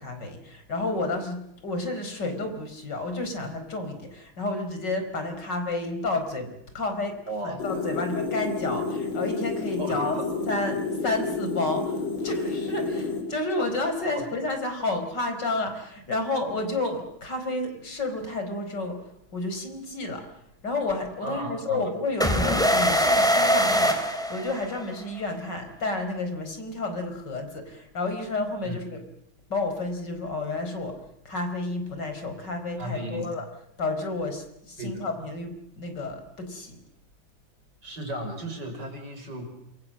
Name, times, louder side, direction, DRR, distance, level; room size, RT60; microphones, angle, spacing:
voice 1, 0.0-7.2 7.4-10.2 10.5-19.0 19.3-20.3 20.6-29.0 29.5-31.0 31.3-33.5 33.8-36.8, left 2 dB, 60° left, 7 dB, 5.3 m, -31 dB
voice 2, 7.3-7.9 9.8-10.3 14.1-14.3 21.2-21.9 28.6-28.8 32.8-33.3 34.8-35.1 37.8-39.5, right 1 dB, 60° right, 5 dB, 6.3 m, -35 dB
sound 1, 7.6-13.2, left 4 dB, 80° left, 5.5 m, -30 dB
sound 2, 22.2-25.0, equal, ahead, 3.7 m, -22 dB
27.5 x 24.0 x 7.6 m, 0.75 s
omnidirectional pair, 2.1 m